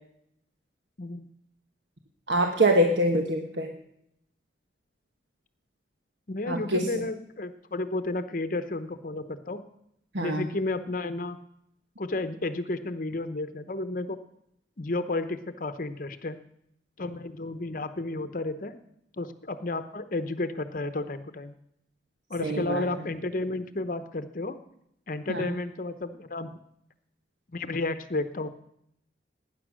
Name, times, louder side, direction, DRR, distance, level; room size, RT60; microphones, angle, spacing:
voice 1, 2.3-3.7 6.5-6.9 10.1-10.4 22.4-22.9 25.3-25.5, right 1 dB, 75° right, 4 dB, 1.3 m, -24 dB
voice 2, 6.3-9.6 10.2-11.4 12.0-14.2 14.8-16.4 17.0-18.8 19.2-21.5 22.3-24.6 25.1-26.6 27.5-28.5, left 2 dB, 50° left, 11 dB, 0.8 m, -32 dB
19.0 x 10.0 x 6.2 m, 0.76 s
head